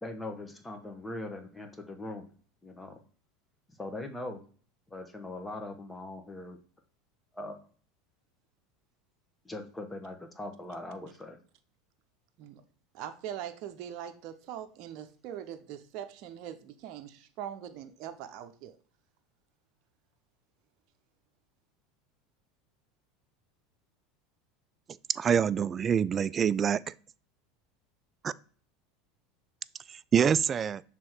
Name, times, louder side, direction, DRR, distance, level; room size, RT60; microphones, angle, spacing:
voice 1, 0.0-2.2 2.6-3.0 3.7-4.4 4.9-6.6 7.3-7.7 9.4-11.4, left 2 dB, 15° left, 1.3 m, -40 dB
voice 2, 12.9-18.8, right 10 dB, 55° right, 0.7 m, -42 dB
voice 3, 25.1-26.8 28.2-28.3 29.9-30.8, right 7 dB, 30° right, 0.3 m, -26 dB
6.1 x 3.7 x 4.5 m
hypercardioid pair, 90°, 0 cm